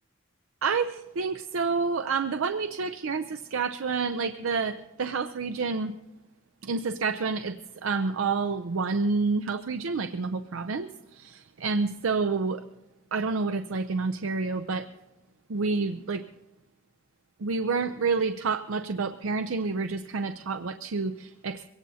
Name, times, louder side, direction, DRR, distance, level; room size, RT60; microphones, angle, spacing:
voice 1, 0.6-5.9 6.6-12.6 13.1-14.9 15.5-16.2 17.4-21.7, right 4 dB, 85° right, 9 dB, 0.6 m, -29 dB
23.0 x 17.5 x 2.8 m, 1.0 s
head